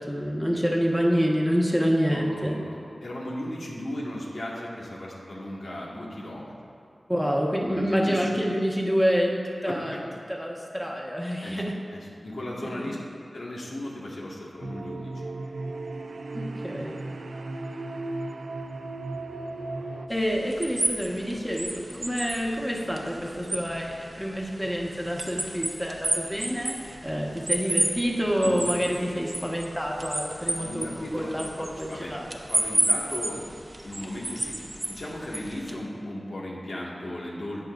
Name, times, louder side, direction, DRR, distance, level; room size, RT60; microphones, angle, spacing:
voice 1, 0.0-2.6 7.1-9.9 10.3-11.7 12.6-12.9 16.3-17.0 20.1-26.8 27.0-32.3, equal, 5° left, -2 dB, 1.4 m, -27 dB
voice 2, 2.1-6.7 7.7-8.5 9.7-10.0 11.4-11.6 11.9-13.0 13.3-15.3 28.4-28.6 30.3-32.2 32.5-33.4 33.8-34.6 34.9-37.6, left 1 dB, 80° left, -5 dB, 1.8 m, -36 dB
sound 1, 14.6-20.1, right 2 dB, 85° right, 0.5 m, -35 dB
sound 2, 20.1-35.7, right 1 dB, 30° right, 0.9 m, -32 dB
17.5 x 6.5 x 2.6 m, 2.3 s
wide cardioid pair, 60°, 0 cm